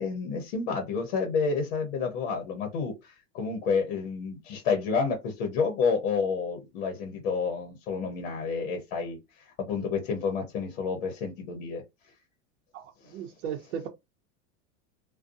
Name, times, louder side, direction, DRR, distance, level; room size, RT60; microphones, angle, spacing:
voice 1, 0.0-9.2 9.6-11.8 13.0-13.2, left 5 dB, 55° left, 0.9 m, -29 dB
voice 2, 12.7-13.9, right 8 dB, 70° right, 0.7 m, -36 dB
2.5 x 2.2 x 2.6 m
supercardioid pair, 170°, 38 cm